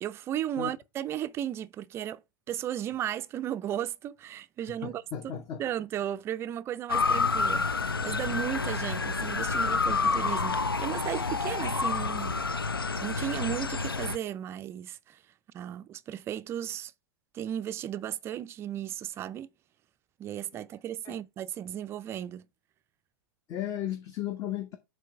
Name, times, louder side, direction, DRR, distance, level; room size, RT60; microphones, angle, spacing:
voice 1, 0.0-2.2 2.5-5.0 5.6-12.4 13.0-15.2 15.5-16.9 17.3-19.5 20.2-22.5, right 11 dB, 20° right, 0.4 m, -35 dB
voice 2, 4.8-5.6 9.6-9.8 21.0-21.2 23.5-24.8, left 11 dB, 30° left, 0.8 m, -35 dB
Motor vehicle (road) / Siren, 6.9-14.2, left 4 dB, 80° left, 0.5 m, -29 dB
7.4 x 3.2 x 4.7 m
figure-of-eight pair, 95°, 12 cm